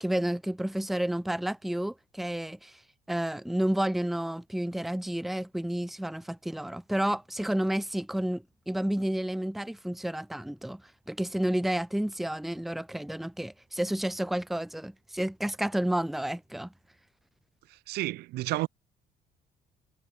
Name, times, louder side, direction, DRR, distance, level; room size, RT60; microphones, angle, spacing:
voice 1, 0.0-2.8 3.1-10.8 11.1-16.7, right 1 dB, ahead, 0.6 m, -30 dB
voice 2, 17.9-18.7, right 19 dB, 70° right, 0.4 m, -30 dB
cardioid pair, 110°, 17 cm